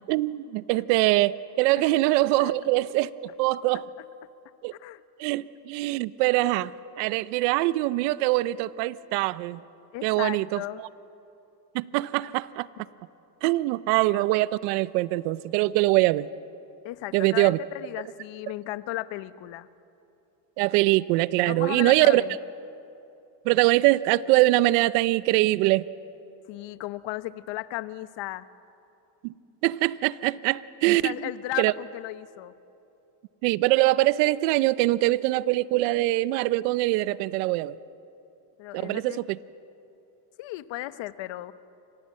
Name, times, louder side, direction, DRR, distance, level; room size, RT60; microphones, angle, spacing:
voice 1, 0.0-3.1 3.4-3.8 4.6-4.7 5.2-6.7 7.0-9.6 10.0-10.6 11.7-12.7 13.4-16.3 17.1-17.6 20.6-22.2 23.5-25.8 29.2-29.3 29.6-31.1 31.6-31.7 33.4-37.8 38.8-39.4, right 18 dB, 80° right, 17 dB, 0.8 m, -23 dB
voice 2, 9.9-10.8 16.8-19.7 21.5-22.3 26.5-28.5 31.0-32.5 38.6-39.2 40.4-41.5, left 16 dB, 65° left, 14 dB, 1.2 m, -35 dB
29.5 x 26.0 x 7.6 m, 2.8 s
supercardioid pair, 105°, 49 cm